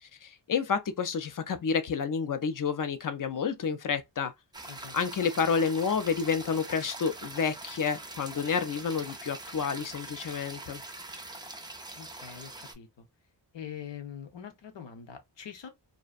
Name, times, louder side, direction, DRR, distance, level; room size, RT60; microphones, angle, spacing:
voice 1, 0.0-4.3 4.9-10.8, left 6 dB, 45° left, 0.5 m, -30 dB
sound 1, 4.5-12.7, right 2 dB, 10° right, 0.5 m, -43 dB
voice 2, 12.0-13.1 13.5-15.7, left 8 dB, 75° left, 0.8 m, -44 dB
2.5 x 2.1 x 2.3 m
wide cardioid pair, 85°, 44 cm